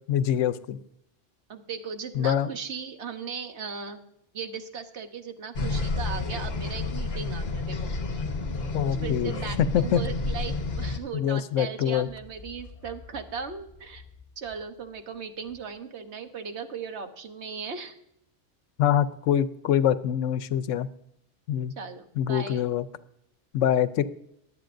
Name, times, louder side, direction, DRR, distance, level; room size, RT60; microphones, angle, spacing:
voice 1, 0.1-0.8 2.2-2.5 8.7-9.3 9.7-10.0 11.1-12.1 18.8-20.9 21.5-21.7 22.2-22.8 23.5-24.1, left 10 dB, 85° left, 14 dB, 1.0 m, -24 dB
voice 2, 1.5-4.0 4.3-7.8 8.8-14.0 14.4-17.9 21.8-22.6, right 6 dB, 65° right, 7 dB, 1.3 m, -37 dB
sound 1, 5.5-11.0, left 3 dB, 55° left, 1.4 m, -30 dB
sound 2, 12.0-15.8, left 5 dB, 30° left, 1.2 m, -50 dB
22.0 x 8.2 x 2.6 m, 0.77 s
omnidirectional pair, 1.3 m